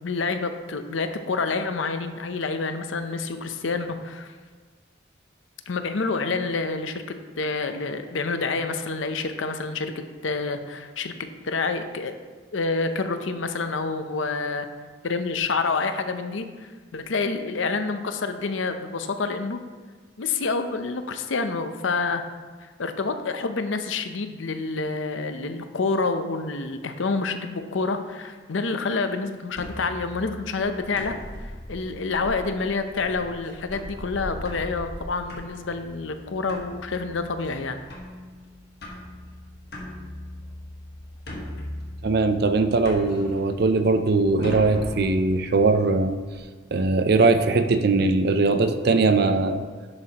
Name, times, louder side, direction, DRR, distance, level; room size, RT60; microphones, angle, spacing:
voice 1, 0.0-4.3 5.7-11.1 11.4-12.2 12.5-14.7 15.0-19.6 20.2-22.2 22.8-31.2 31.7-37.8, left 4 dB, 80° left, 8 dB, 0.7 m, -28 dB
sound 1, 29.5-46.4, left 1 dB, 55° left, 1.5 m, -39 dB
voice 2, 42.0-46.2 46.7-49.6, right 3 dB, 55° right, 9 dB, 0.5 m, -20 dB
11.0 x 7.5 x 3.0 m, 1.5 s
head